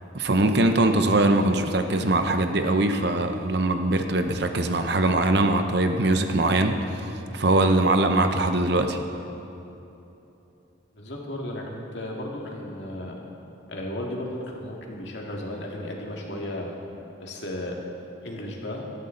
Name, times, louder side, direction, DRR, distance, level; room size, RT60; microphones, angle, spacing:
voice 1, 0.1-7.1 7.3-9.0, right 2 dB, 55° right, 6 dB, 0.8 m, -22 dB
voice 2, 10.9-13.1 13.7-16.8 17.2-17.8 18.2-18.8, left 1 dB, 60° left, -1 dB, 2.2 m, -34 dB
18.0 x 13.0 x 3.9 m, 2.9 s
head